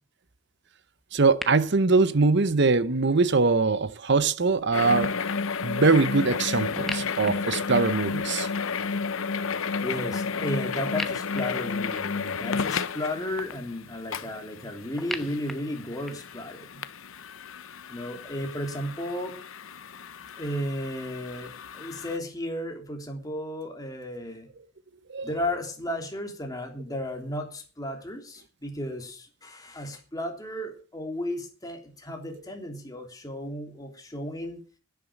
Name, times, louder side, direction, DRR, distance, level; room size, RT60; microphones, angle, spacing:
voice 1, 1.1-5.1 5.6-8.5 25.1-25.3, right 4 dB, 55° right, 0.8 m, -22 dB
sound 1, 1.4-1.5 6.8-8.2 10.9-12.3 15.0-16.4, equal, ahead, 0.9 m, -38 dB
sound 2, 4.7-22.2, left 5 dB, 70° left, 0.8 m, -32 dB
voice 2, 9.8-16.8 17.9-19.3 20.4-24.5 25.2-34.6, left 1 dB, 15° left, 3.1 m, -34 dB
10.5 x 10.5 x 7.1 m
head